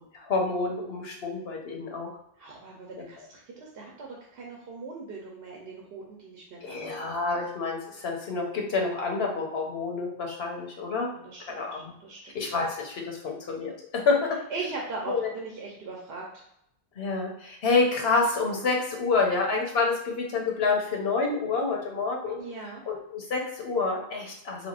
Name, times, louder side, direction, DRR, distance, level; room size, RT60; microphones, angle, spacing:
voice 1, 0.0-2.1 6.6-11.1 11.5-11.9 12.3-14.4 15.1-15.3 17.0-22.4 22.9-24.7, left 4 dB, 85° left, 0 dB, 1.1 m, -28 dB
voice 2, 2.4-6.8 11.0-12.4 14.5-16.4 22.4-22.8, right 3 dB, 85° right, -2 dB, 1.0 m, -40 dB
3.5 x 3.4 x 2.4 m, 0.75 s
omnidirectional pair, 1.0 m